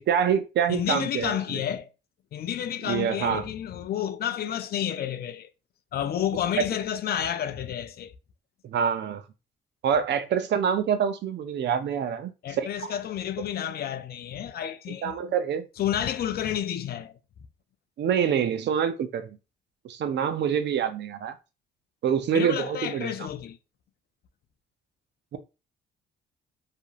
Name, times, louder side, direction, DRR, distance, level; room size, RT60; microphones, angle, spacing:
voice 1, 0.0-1.6 2.9-3.5 6.6-6.7 8.6-9.2 9.8-12.9 15.0-15.6 18.0-19.4 19.8-21.3 22.0-23.1 25.3-25.4, right 8 dB, 60° right, 0.5 m, -26 dB
voice 2, 0.7-1.9 2.3-5.5 5.9-8.1 12.4-15.2 15.8-17.1 22.3-23.6, left 10 dB, 50° left, 0.4 m, -30 dB
2.8 x 2.5 x 2.4 m
cardioid pair, 90°, 20 cm